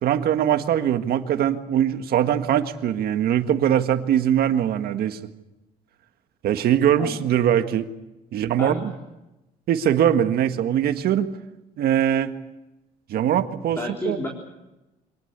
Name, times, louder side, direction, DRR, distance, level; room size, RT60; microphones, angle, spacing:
voice 1, 0.0-5.2 6.4-7.9 8.3-8.9 9.7-11.3 11.8-12.3 13.1-13.8 14.1-14.2, right 10 dB, 65° right, 8 dB, 1.7 m, -21 dB
voice 2, 8.3-8.8 13.8-14.3, left 1 dB, 15° left, 0 dB, 4.1 m, -31 dB
25.5 x 18.5 x 8.2 m, 0.99 s
cardioid pair, 110°, 17 cm